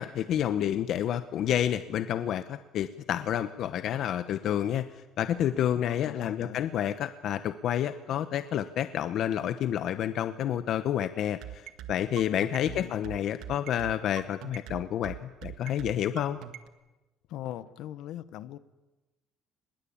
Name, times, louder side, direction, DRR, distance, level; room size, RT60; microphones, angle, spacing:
voice 1, 0.0-4.8 5.2-16.4, left 10 dB, 55° left, 11 dB, 0.9 m, -29 dB
voice 2, 5.7-6.7 12.6-13.1 17.3-18.6, left 12 dB, 70° left, 14 dB, 1.1 m, -41 dB
sound 1, 11.4-16.7, right 13 dB, 70° right, 1.8 m, -41 dB
24.0 x 21.5 x 8.8 m, 1.1 s
cardioid pair, 155°, 0 cm